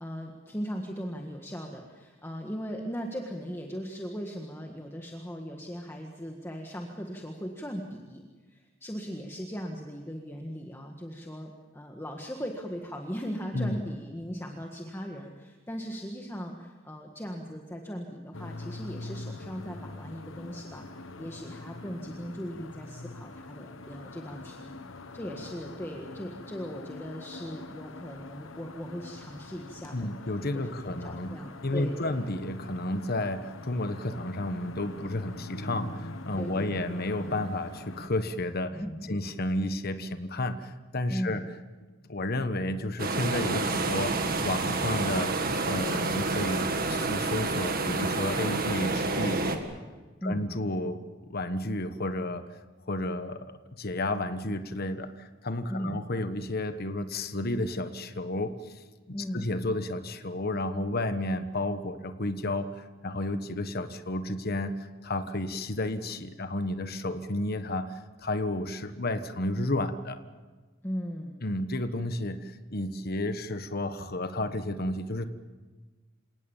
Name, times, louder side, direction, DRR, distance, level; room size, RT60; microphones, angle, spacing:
voice 1, 0.0-8.2 8.5-20.8 21.2-30.1 30.5-30.7 31.0-32.1 36.4-36.8 38.7-39.2 41.1-41.4 50.2-50.5 55.7-56.0 59.1-59.4 70.8-71.3, equal, 10° left, 2 dB, 1.7 m, -38 dB
sound 1, 18.3-38.1, left 2 dB, 90° left, 1.2 m, -43 dB
voice 2, 29.9-38.8 39.1-41.4 42.1-45.3 45.6-49.4 50.2-52.4 52.9-70.2 71.4-75.3, left 1 dB, 50° left, 9 dB, 1.3 m, -32 dB
sound 2, 43.0-49.6, right 3 dB, 50° right, 2.0 m, -29 dB
28.0 x 18.0 x 7.2 m, 1.3 s
head